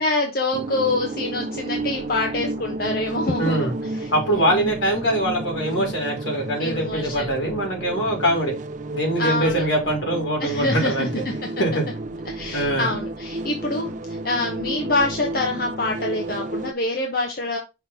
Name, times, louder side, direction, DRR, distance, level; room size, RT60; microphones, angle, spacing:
voice 1, 0.0-3.7 4.0-4.1 6.6-7.3 9.2-9.6 10.4-11.1 12.3-17.6, left 2 dB, 50° left, 1.0 m, -25 dB
sound 1, 0.5-16.7, right 2 dB, 40° right, 0.5 m, -32 dB
voice 2, 3.4-3.7 4.1-8.5 8.9-11.2 11.6-11.8 12.5-12.9, right 1 dB, 80° left, 3.3 m, -23 dB
5.8 x 3.3 x 5.8 m
head